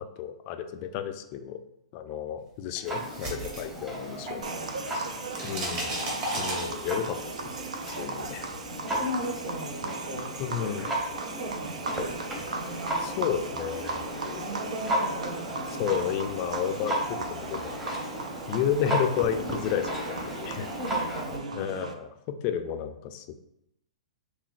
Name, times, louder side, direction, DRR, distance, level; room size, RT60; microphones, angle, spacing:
voice 1, 0.0-1.6 1.9-4.4 4.9-5.1 5.4-5.9 6.4-8.5 10.4-10.9 13.0-14.5 15.8-17.9 18.5-20.7 21.5-23.4, left 8 dB, 35° left, 8 dB, 0.3 m, -32 dB
Clock, 2.8-21.4, right 1 dB, 5° right, 0.8 m, -35 dB
sound 1, 2.8-4.5 4.7-7.2, right 1 dB, 35° right, 1.4 m, -34 dB
voice 2, 4.2-5.1 5.4-5.9 8.8-10.3 11.3-13.0 14.4-16.1 19.1-19.2 20.8-21.9, equal, 55° right, 0 dB, 1.1 m, -38 dB
sound 2, 4.4-21.9, right 3 dB, 85° right, 0.4 m, -38 dB
5.7 x 2.2 x 2.4 m, 0.82 s
hypercardioid pair, 135°, 4 cm